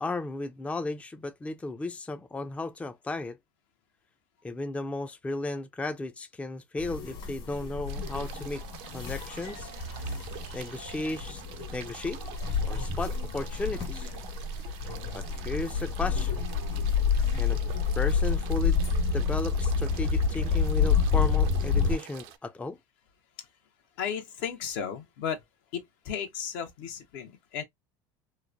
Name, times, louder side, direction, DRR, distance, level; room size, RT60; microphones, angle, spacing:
voice 1, 0.0-3.4 4.4-8.6 8.9-9.7 10.5-11.4 11.7-12.2 12.7-14.1 15.1-16.5 17.4-17.6 18.0-18.8 19.1-22.8, left 2 dB, 10° left, 0.4 m, -34 dB
sound 1, 6.8-21.9, left 5 dB, 55° left, 1.5 m, -29 dB
sound 2, 7.9-22.4, right 11 dB, 65° right, 0.5 m, -47 dB
voice 2, 24.0-25.4 25.7-27.6, left 8 dB, 70° left, 0.9 m, -34 dB
3.0 x 2.1 x 2.4 m
hypercardioid pair, 85°, 11 cm